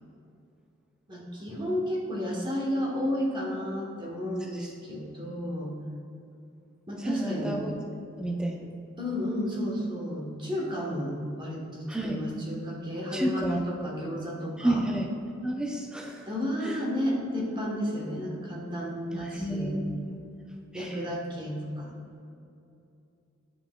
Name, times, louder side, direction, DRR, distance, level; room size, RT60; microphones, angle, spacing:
voice 1, 1.1-5.7 6.9-7.5 9.0-14.8 16.2-19.8 20.7-21.9, equal, 25° right, -2 dB, 1.1 m, -32 dB
voice 2, 7.0-7.7 8.2-8.7 11.9-12.2 13.1-13.6 14.6-15.1 15.4-16.3 16.6-16.8 19.1-20.2 20.7-21.0, right 1 dB, 5° right, -1 dB, 0.4 m, -31 dB
9.6 x 5.3 x 2.2 m, 2.6 s
head